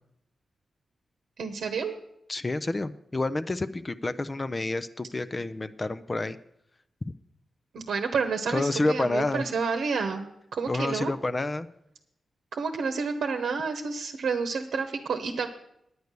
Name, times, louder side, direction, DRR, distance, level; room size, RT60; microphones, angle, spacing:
voice 1, 1.4-2.0 7.7-11.1 12.5-15.5, right 5 dB, 85° right, 6 dB, 0.9 m, -30 dB
voice 2, 2.3-6.4 8.5-9.4 10.7-11.7, left 2 dB, 30° left, 12 dB, 0.5 m, -29 dB
9.4 x 9.2 x 6.7 m, 0.78 s
cardioid pair, 80°, 0 cm